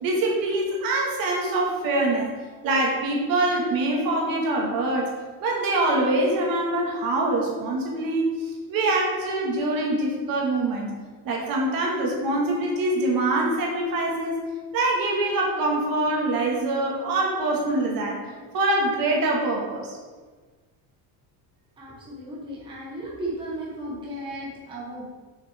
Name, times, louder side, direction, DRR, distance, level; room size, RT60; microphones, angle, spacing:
voice 1, 0.0-2.3 2.6-5.1 5.4-10.9 11.2-14.4 14.7-18.2 18.5-20.0, right 2 dB, 55° right, -2 dB, 1.5 m, -24 dB
voice 2, 21.8-25.0, right 1 dB, 10° right, -5 dB, 0.9 m, -35 dB
6.4 x 5.8 x 3.4 m, 1.4 s
cardioid pair, 175°, 42 cm